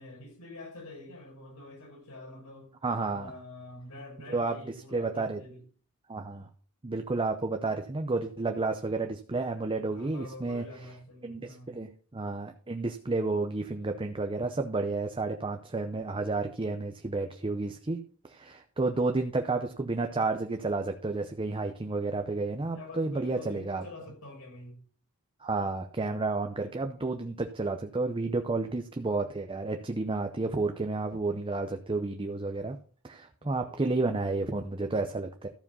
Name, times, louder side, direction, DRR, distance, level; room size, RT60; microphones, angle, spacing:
voice 1, 0.0-2.7 3.1-5.6 9.9-11.8 22.7-24.8 33.4-34.4, left 2 dB, 85° left, 5.6 m, -47 dB
voice 2, 2.8-3.3 4.3-4.6 4.9-5.4 6.1-6.5 6.8-10.6 11.2-18.0 18.2-23.8 25.4-32.8 33.0-35.5, right 3 dB, 25° right, 0.7 m, -31 dB
13.5 x 4.9 x 5.5 m
head